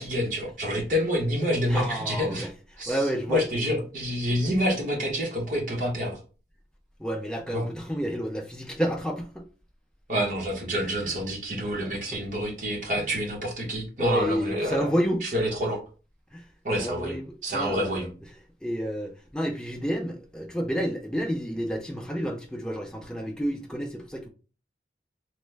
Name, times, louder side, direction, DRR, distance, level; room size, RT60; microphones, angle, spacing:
voice 1, 0.0-2.5 2.8-6.2 7.5-7.7 10.1-14.9 15.2-15.8 16.6-17.2 17.4-18.1, equal, 45° right, 1.0 m, -28 dB
voice 2, 1.7-2.5 2.7-3.5 7.0-9.4 11.7-12.2 14.0-15.2 16.3-16.4 16.8-18.1 18.6-24.3, equal, 5° left, 0.4 m, -30 dB
3.1 x 2.1 x 3.2 m
head